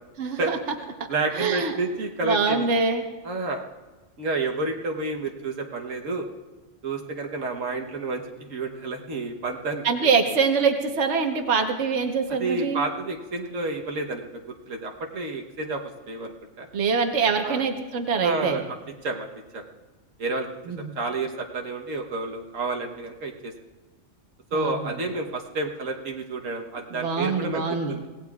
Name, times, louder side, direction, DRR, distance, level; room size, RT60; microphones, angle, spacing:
voice 1, 0.2-0.6 1.3-1.7 2.2-3.0 9.8-12.8 16.7-18.6 20.7-20.9 24.5-25.0 26.9-27.9, right 5 dB, 65° right, 4 dB, 1.4 m, -24 dB
voice 2, 1.1-2.7 3.2-3.6 4.2-6.3 6.8-10.1 12.3-14.2 14.7-16.7 17.4-17.6 18.2-18.8 19.0-19.3 19.5-19.6 20.2-20.5 20.8-23.5 24.5-27.6 27.9-28.0, right 3 dB, 80° right, 2 dB, 1.5 m, -30 dB
25.0 x 18.0 x 2.4 m, 1.2 s
omnidirectional pair, 1.3 m